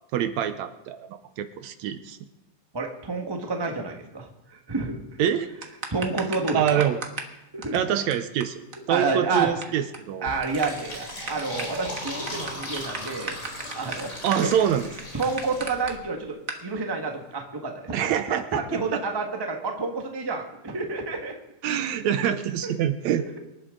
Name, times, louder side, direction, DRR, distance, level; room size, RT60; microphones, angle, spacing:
voice 1, 0.1-1.1 1.4-2.2 5.2-5.5 6.5-7.0 7.7-8.6 8.9-10.3 14.2-14.9 17.9-18.6 18.9-19.0 21.6-23.4, right 10 dB, 75° right, 10 dB, 1.9 m, -25 dB
voice 2, 2.7-5.3 5.9-6.8 7.5-7.8 8.9-9.8 10.2-13.4 13.7-14.1 14.4-14.5 15.1-21.3 22.2-22.3 22.6-22.7 23.1-23.4, right 3 dB, 20° right, 2 dB, 0.7 m, -29 dB
sound 1, 5.6-7.3 7.6-7.8 8.1-8.2 8.4-8.5 8.7-8.8 9.0-9.6 9.9-10.1 10.4-15.9 16.5-16.6, right 4 dB, 50° right, 0.9 m, -34 dB
Fill (with liquid), 10.2-15.9, left 1 dB, 25° left, 3.8 m, -37 dB
24.5 x 11.5 x 3.8 m, 0.91 s
omnidirectional pair, 3.5 m